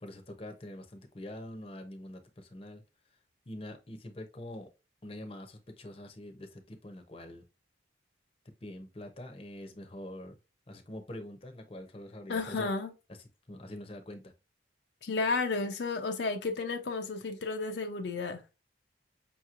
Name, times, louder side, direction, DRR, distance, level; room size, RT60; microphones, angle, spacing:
voice 1, 0.0-2.8 3.5-4.7 5.0-7.4 8.6-10.3 10.7-12.7 13.1-13.2 13.5-14.3, left 1 dB, 30° left, 0.7 m, -44 dB
voice 2, 12.3-12.9 15.0-18.4, left 3 dB, 70° left, 0.5 m, -32 dB
5.6 x 2.9 x 2.4 m
head